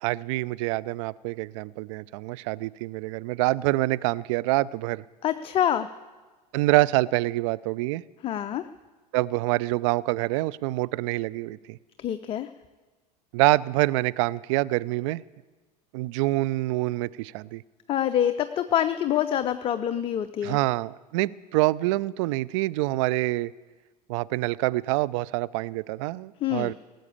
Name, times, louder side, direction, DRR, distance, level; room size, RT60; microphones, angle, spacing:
voice 1, 0.0-5.0 6.5-8.0 9.1-11.8 13.3-15.2 15.9-17.6 20.4-23.5 24.1-26.7, right 19 dB, 50° right, 19 dB, 0.4 m, -26 dB
voice 2, 5.2-5.9 8.2-8.6 12.0-12.5 17.9-20.6 26.4-26.7, left 10 dB, 25° left, 11 dB, 0.5 m, -26 dB
18.0 x 7.7 x 8.6 m, 1.3 s
figure-of-eight pair, 80°, 21 cm